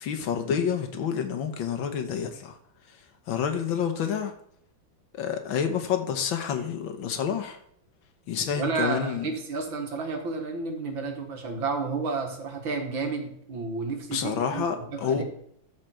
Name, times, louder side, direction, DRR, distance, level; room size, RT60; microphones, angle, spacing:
voice 1, 0.0-2.6 3.3-4.3 5.1-7.6 8.3-9.3 14.1-15.2, left 7 dB, 75° left, 7 dB, 1.8 m, -28 dB
voice 2, 8.6-15.2, right 4 dB, 75° right, 3 dB, 2.3 m, -31 dB
13.0 x 5.1 x 4.4 m, 0.69 s
omnidirectional pair, 2.2 m